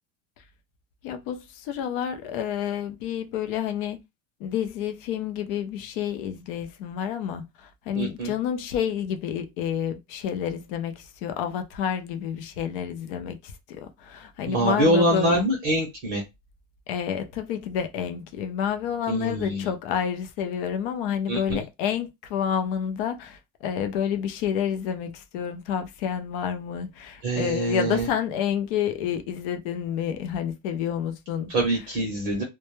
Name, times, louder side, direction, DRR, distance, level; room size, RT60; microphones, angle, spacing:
voice 1, 1.0-4.0 4.4-15.4 16.9-31.8, left 8 dB, 45° left, 0.4 m, -29 dB
voice 2, 8.0-8.3 14.5-16.2 19.1-19.6 21.3-21.6 27.2-28.0 31.5-32.4, right 1 dB, 30° right, 0.7 m, -24 dB
2.1 x 2.1 x 2.9 m
cardioid pair, 175°, 39 cm